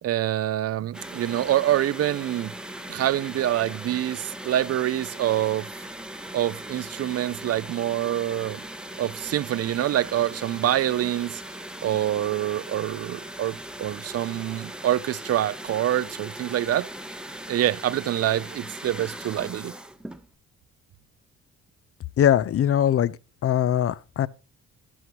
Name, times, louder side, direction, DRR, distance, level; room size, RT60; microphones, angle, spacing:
voice 1, 0.0-2.5 2.9-5.7 6.3-8.6 9.0-11.4 11.8-16.9 17.5-19.7, right 12 dB, 55° right, 0.5 m, -26 dB
sound 1, 0.9-20.3, right 1 dB, 5° right, 0.8 m, -39 dB
voice 2, 22.2-23.2 23.4-24.3, left 10 dB, 50° left, 0.5 m, -21 dB
12.5 x 9.5 x 2.9 m
cardioid pair, 90°, 30 cm